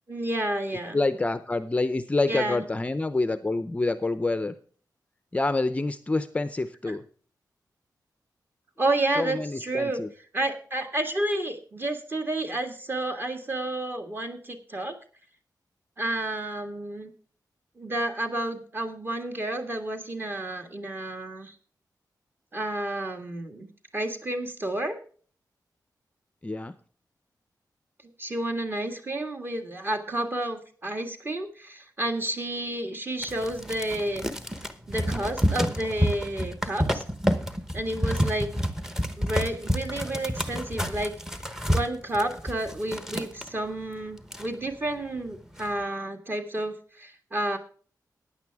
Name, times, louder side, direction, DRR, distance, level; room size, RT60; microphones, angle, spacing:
voice 1, 0.1-1.0 2.3-2.6 6.9-7.0 8.8-10.0 10.3-15.0 16.0-17.1 17.8-21.6 22.5-23.7 23.9-25.0 28.2-34.2 34.9-37.0 37.7-38.5 39.2-41.2 41.7-47.6, right 1 dB, 30° right, 5 dB, 1.8 m, -30 dB
voice 2, 0.9-4.5 5.3-7.0 9.2-10.1 26.4-26.7, left 2 dB, 20° left, 12 dB, 0.6 m, -27 dB
sound 1, 33.2-43.5 44.0-44.1 44.2-44.9 45.3-45.7, equal, 5° right, 1.0 m, -29 dB
15.5 x 9.8 x 3.5 m, 0.43 s
wide cardioid pair, 175°, 7 cm